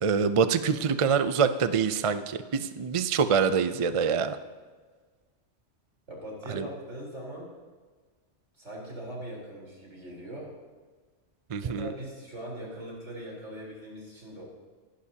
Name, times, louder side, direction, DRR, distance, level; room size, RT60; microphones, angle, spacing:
voice 1, 0.0-4.4 6.5-6.7 11.5-11.9, right 6 dB, 40° right, 10 dB, 0.5 m, -25 dB
voice 2, 6.1-7.5 8.5-10.6 11.6-14.4, right 1 dB, 85° right, -3 dB, 4.4 m, -40 dB
25.5 x 11.5 x 2.9 m, 1.4 s
omnidirectional pair, 1.2 m